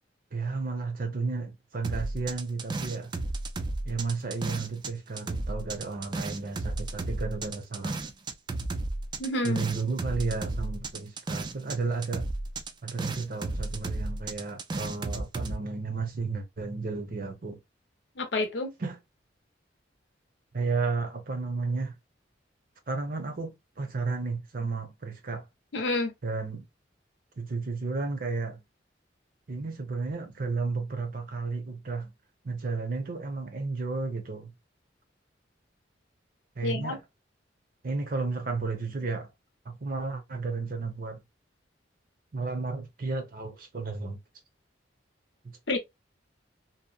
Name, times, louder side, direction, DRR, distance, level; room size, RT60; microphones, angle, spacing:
voice 1, 0.3-3.1 3.8-8.0 9.4-12.2 12.8-17.6 18.8-19.0 20.5-21.9 22.9-25.4 26.2-26.6 27.4-28.6 29.5-32.1 32.4-34.5 36.6-37.0 37.8-39.3 39.6-41.2 42.3-44.2, right 4 dB, 50° right, 0.7 m, -33 dB
sound 1, 1.8-4.9 5.2-11.8 12.0-15.5, right 2 dB, 25° right, 0.3 m, -33 dB
voice 2, 9.2-9.6 18.2-18.7 25.7-26.1 36.6-37.0 45.7-45.8, left 2 dB, 75° left, 0.7 m, -29 dB
2.8 x 2.0 x 2.3 m
head